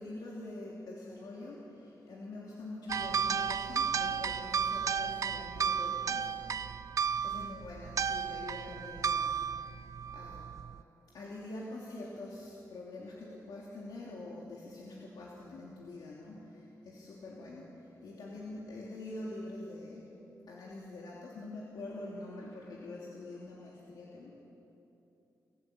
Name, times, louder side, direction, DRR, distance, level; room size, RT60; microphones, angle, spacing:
voice 1, 0.0-6.8 7.2-9.9 10.1-10.5 11.1-20.1 20.5-24.3, left 2 dB, 85° left, -4 dB, 2.9 m, -45 dB
sound 1, 2.9-10.8, right 7 dB, 50° right, 0.5 m, -33 dB
29.5 x 12.5 x 8.5 m, 2.9 s
wide cardioid pair, 145°, 7 cm